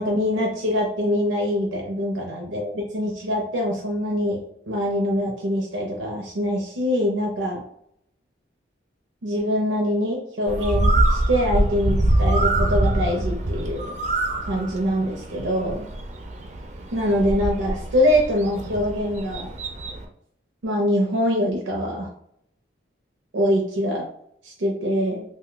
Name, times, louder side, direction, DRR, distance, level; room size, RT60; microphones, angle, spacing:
voice 1, 0.0-7.7 9.2-13.9 14.4-15.9 16.9-19.5 20.6-22.1 23.3-24.1 24.4-25.2, equal, 85° right, -2 dB, 0.6 m, -24 dB
Bird, 10.5-20.0, right 1 dB, 35° right, 0.4 m, -24 dB
2.6 x 2.2 x 3.7 m, 0.72 s
head